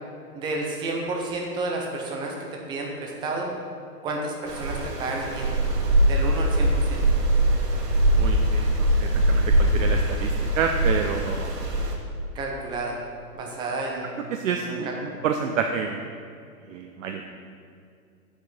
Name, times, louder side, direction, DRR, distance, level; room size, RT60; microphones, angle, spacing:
voice 1, 0.3-3.5 4.0-5.5 6.0-7.0 12.3-13.0 13.3-14.3 14.6-15.2, right 2 dB, 10° right, 0 dB, 0.5 m, -31 dB
sound 1, 4.5-11.9, right 1 dB, 80° right, 1.6 m, -22 dB
voice 2, 8.2-11.5 14.3-16.0 16.7-17.2, right 6 dB, 55° right, 4 dB, 0.7 m, -29 dB
8.9 x 5.2 x 5.3 m, 2.4 s
hypercardioid pair, 130°, 47 cm